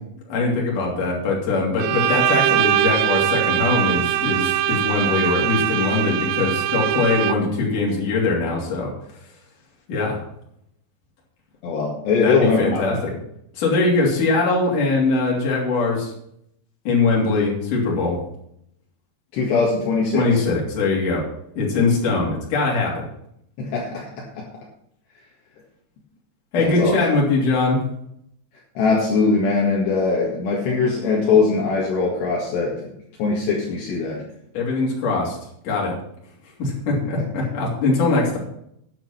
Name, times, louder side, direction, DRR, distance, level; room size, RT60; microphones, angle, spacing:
voice 1, 0.3-8.9 9.9-10.2 12.2-13.1 13.5-16.1 16.8-18.2 20.1-21.2 21.6-23.0 26.5-27.8 34.5-35.4 35.6-35.9 36.6-38.4, left 3 dB, 45° left, -3 dB, 4.1 m, -21 dB
Bowed string instrument, 1.8-7.6, right 12 dB, 80° right, 2.6 m, -22 dB
voice 2, 11.6-13.0 19.3-20.3 23.6-24.4 26.6-26.9 28.8-32.9 33.2-34.2, left 4 dB, 70° left, -3 dB, 3.8 m, -21 dB
9.9 x 8.2 x 5.8 m, 0.73 s
omnidirectional pair, 5.3 m